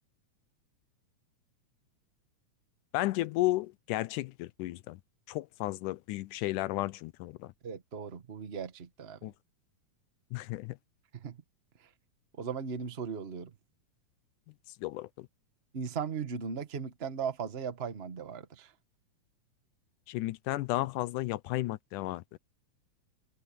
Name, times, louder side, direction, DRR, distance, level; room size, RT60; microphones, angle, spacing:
voice 1, 2.9-5.0 5.3-7.5 9.2-9.3 10.3-10.8 14.8-15.3 20.1-22.4, left 17 dB, 85° left, 2.2 m, -33 dB
voice 2, 7.6-9.3 11.1-11.4 12.4-13.5 15.7-18.7, right 6 dB, 45° right, 0.8 m, -37 dB
omnidirectional pair, 3.5 m